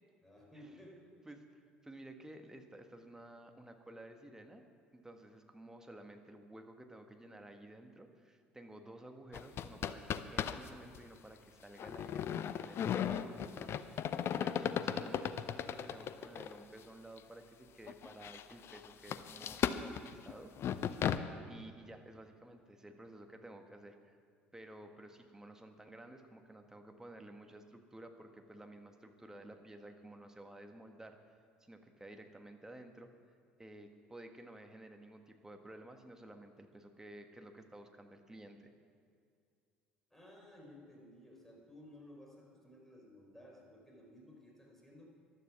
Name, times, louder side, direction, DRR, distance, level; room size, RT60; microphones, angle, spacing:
voice 1, 0.2-1.3 40.1-45.1, left 1 dB, 5° left, -1 dB, 4.8 m, -56 dB
voice 2, 1.2-4.6 4.9-13.7 14.0-14.1 14.4-21.1 21.5-24.2 24.5-31.2 31.6-33.1 33.6-38.7, right 1 dB, 10° right, 5 dB, 1.5 m, -53 dB
sound 1, 9.3-10.7 10.9-11.0 11.8-16.6 17.2-17.3 17.9-21.2, left 9 dB, 45° left, 0.6 m, -36 dB
14.5 x 11.5 x 6.1 m, 2.3 s
figure-of-eight pair, 60°, 6 cm